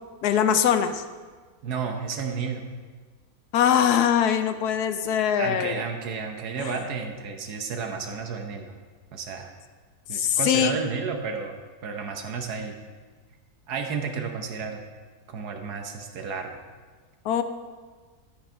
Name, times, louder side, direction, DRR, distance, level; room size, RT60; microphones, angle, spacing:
voice 1, 0.2-1.0 3.5-5.7 6.6-6.7 10.1-10.8 17.2-17.4, left 8 dB, 80° left, 10 dB, 1.2 m, -22 dB
voice 2, 1.6-2.6 5.4-8.7 9.1-9.5 10.1-12.8 13.7-14.8 15.3-16.6, right 5 dB, 90° right, 4 dB, 1.5 m, -32 dB
11.5 x 8.8 x 4.5 m, 1.4 s
omnidirectional pair, 1.6 m